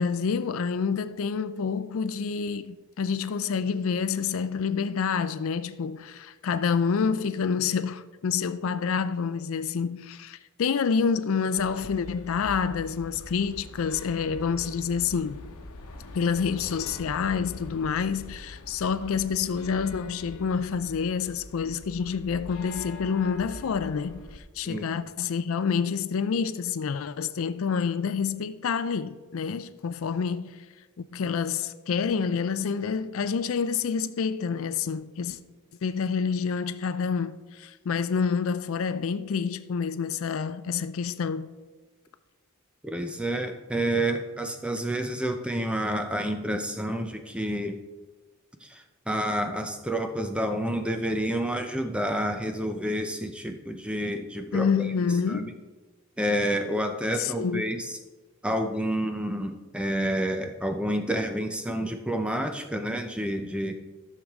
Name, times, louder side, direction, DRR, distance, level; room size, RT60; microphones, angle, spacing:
voice 1, 0.0-15.4 16.1-30.6 31.1-35.4 35.8-41.5 54.5-55.5 57.2-57.7, left 6 dB, 65° left, 0.4 m, -28 dB
sound 1, 11.6-24.4, left 2 dB, 80° left, 1.0 m, -43 dB
voice 2, 42.8-47.8 48.6-54.9 55.3-55.5 56.2-58.0 58.4-63.7, right 1 dB, 5° right, 0.6 m, -29 dB
13.5 x 6.6 x 3.6 m
head